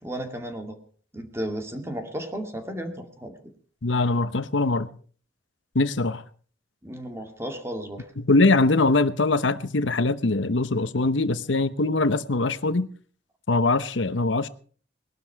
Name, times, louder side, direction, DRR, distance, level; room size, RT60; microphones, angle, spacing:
voice 1, 0.0-0.8 1.1-3.3 6.8-8.1, right 1 dB, 15° right, 2.2 m, -34 dB
voice 2, 3.8-4.9 5.7-6.2 8.2-12.9 13.5-14.5, left 3 dB, 80° left, 1.0 m, -22 dB
20.0 x 12.0 x 4.7 m
head